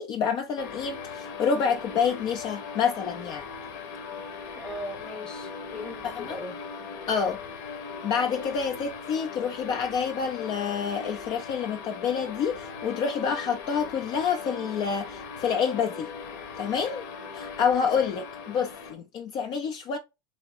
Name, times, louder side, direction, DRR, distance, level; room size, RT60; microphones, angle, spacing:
voice 1, 0.0-3.5 6.0-6.4 7.1-7.4 8.0-16.1 16.6-17.0 17.3-20.0, left 6 dB, 40° left, 0.5 m, -28 dB
sound 1, 0.6-18.9, left 5 dB, 65° left, 0.9 m, -39 dB
voice 2, 4.6-6.5 17.8-18.1, left 1 dB, 5° left, 1.0 m, -39 dB
3.5 x 2.6 x 3.2 m
supercardioid pair, 125°, 12 cm